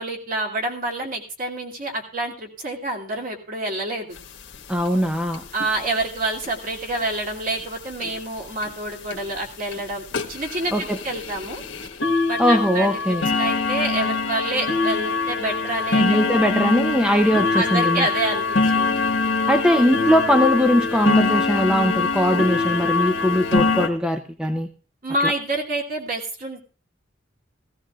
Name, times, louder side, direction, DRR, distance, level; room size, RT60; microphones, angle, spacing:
voice 1, 0.0-4.2 5.5-11.6 12.3-16.3 17.5-19.0 25.0-26.6, right 2 dB, 45° right, 0 dB, 2.8 m, -27 dB
sound 1, 4.2-4.3 4.5-4.6 4.8-5.0 5.3-5.7 6.4-6.5 7.0-7.1 7.5-7.6 8.0-8.1 8.6-8.7 9.1-9.3 9.7-9.8 10.1-23.9, left 4 dB, 75° left, 1.4 m, -23 dB
voice 2, 4.7-5.4 10.7-11.0 12.4-13.3 16.0-18.1 19.5-24.7 25.2-25.3, equal, 5° right, 5 dB, 0.6 m, -20 dB
16.5 x 16.0 x 2.5 m, 0.37 s
head